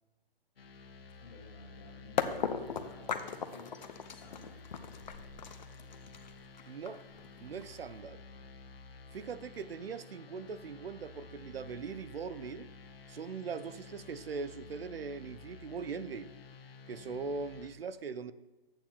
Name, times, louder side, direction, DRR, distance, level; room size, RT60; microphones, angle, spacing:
sound 1, 0.6-17.7, left 4 dB, 80° left, 1.4 m, -52 dB
voice 1, 1.2-3.7 4.1-4.6, left 3 dB, 25° left, 0 dB, 2.0 m, -54 dB
sound 2, 2.2-8.0, left 7 dB, 50° left, 0.8 m, -37 dB
voice 2, 6.7-7.1 7.4-8.2 9.1-12.7 13.1-16.3 16.9-18.3, right 5 dB, 85° right, 13 dB, 0.7 m, -40 dB
12.5 x 8.8 x 2.9 m, 1.0 s
hypercardioid pair, 160°, 29 cm